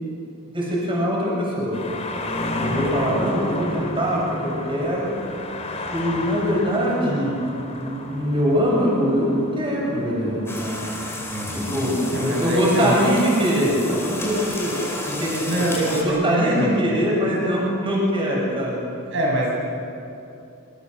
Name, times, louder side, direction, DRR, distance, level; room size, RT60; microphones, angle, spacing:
voice 1, 0.5-1.8 2.2-5.1 5.9-10.8 11.5-14.8 15.0-15.6 15.9-19.1, equal, 25° right, -4 dB, 7.9 m, -23 dB
sound 1, 1.7-16.2, left 1 dB, 30° left, 3.4 m, -34 dB
sound 2, 10.4-16.0, left 1 dB, 10° left, 4.2 m, -32 dB
voice 2, 11.3-12.9 15.4-16.8 19.1-19.5, right 1 dB, 65° right, -3 dB, 7.5 m, -24 dB
28.0 x 25.5 x 6.9 m, 2.7 s
head